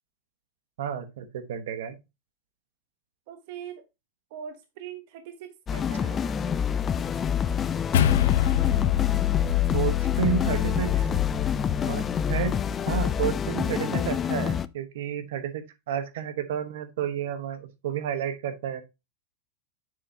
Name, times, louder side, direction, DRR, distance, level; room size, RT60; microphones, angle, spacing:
voice 1, 0.8-2.0 9.7-11.1 11.8-12.6 12.9-18.8, right 8 dB, 75° right, 11 dB, 1.1 m, -31 dB
voice 2, 3.3-3.8 4.3-6.4, right 9 dB, 55° right, 8 dB, 0.9 m, -41 dB
sound 1, 5.7-14.7, left 8 dB, 20° left, 0.3 m, -27 dB
sound 2, 6.8-7.2 7.5-12.8 13.6-14.6, right 1 dB, 20° right, 1.5 m, -47 dB
sound 3, 7.9-12.5, left 13 dB, 80° left, 0.6 m, -25 dB
6.9 x 6.7 x 2.8 m, 0.23 s
supercardioid pair, 155°, 0 cm